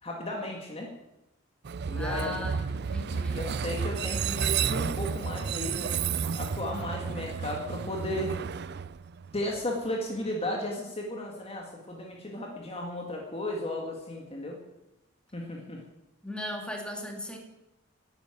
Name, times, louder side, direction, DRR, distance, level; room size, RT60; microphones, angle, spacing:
voice 1, 0.0-0.9 1.8-2.4 3.3-5.9 6.3-8.4 9.3-14.6 15.3-15.8, left 1 dB, 30° left, 0 dB, 2.0 m, -34 dB
Train, 1.7-9.6, right 6 dB, 55° right, 0.5 m, -31 dB
voice 2, 1.9-3.5 16.2-17.4, equal, 5° left, 1 dB, 2.6 m, -37 dB
12.0 x 9.6 x 9.0 m, 0.95 s
head